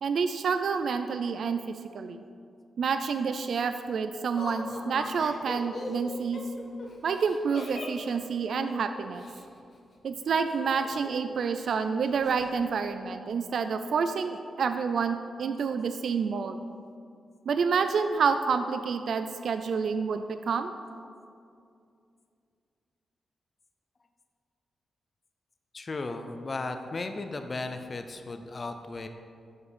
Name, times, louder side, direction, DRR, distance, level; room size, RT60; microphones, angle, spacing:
voice 1, 0.0-2.2 2.8-6.4 7.0-9.3 10.0-16.6 17.5-20.7, right 5 dB, 65° right, 9 dB, 0.3 m, -28 dB
Laughter, 4.4-9.4 10.5-11.3 11.6-11.7 12.1-12.5, left 2 dB, 60° left, 1.2 m, -41 dB
voice 2, 25.7-29.1, left 3 dB, 35° left, 7 dB, 0.4 m, -35 dB
7.1 x 6.6 x 5.1 m, 2.4 s
wide cardioid pair, 125°, 0 cm